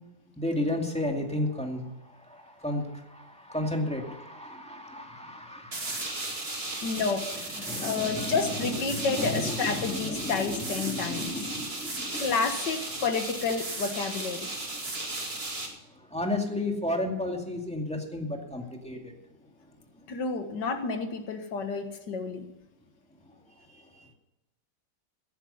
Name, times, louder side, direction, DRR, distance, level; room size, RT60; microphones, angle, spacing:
voice 1, 0.4-1.8 2.3-7.0 7.6-8.4 8.9-12.2 16.1-19.1, left 1 dB, 5° left, 2 dB, 2.1 m, -33 dB
sound 1, 5.7-15.7, right 2 dB, 35° right, 2.4 m, -35 dB
voice 2, 6.8-11.4 12.1-14.5 20.1-22.5, left 4 dB, 75° left, 6 dB, 2.1 m, -30 dB
17.0 x 10.5 x 5.6 m, 0.98 s
omnidirectional pair, 1.9 m